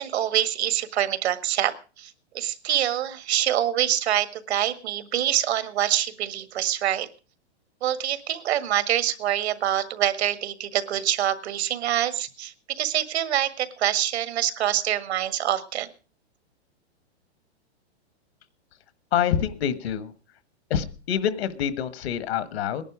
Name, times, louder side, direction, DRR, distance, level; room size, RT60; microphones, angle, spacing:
voice 1, 0.0-7.1 7.8-15.9, right 11 dB, 70° right, 12 dB, 1.7 m, -25 dB
voice 2, 19.1-20.1 20.7-22.8, left 9 dB, 65° left, 14 dB, 1.4 m, -26 dB
19.0 x 11.0 x 4.9 m, 0.35 s
hypercardioid pair, 140°, 33 cm